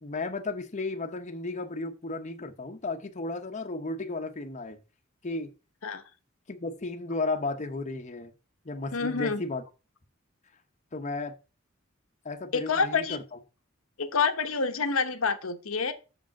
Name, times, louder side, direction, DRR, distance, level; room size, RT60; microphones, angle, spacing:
voice 1, 0.0-4.8 5.2-5.5 6.5-8.3 8.6-9.6 10.9-11.3 12.2-13.2, left 3 dB, 35° left, 0.8 m, -34 dB
voice 2, 8.9-9.4 12.5-13.2 14.0-15.9, left 5 dB, 90° left, 1.0 m, -27 dB
6.8 x 5.0 x 5.7 m
head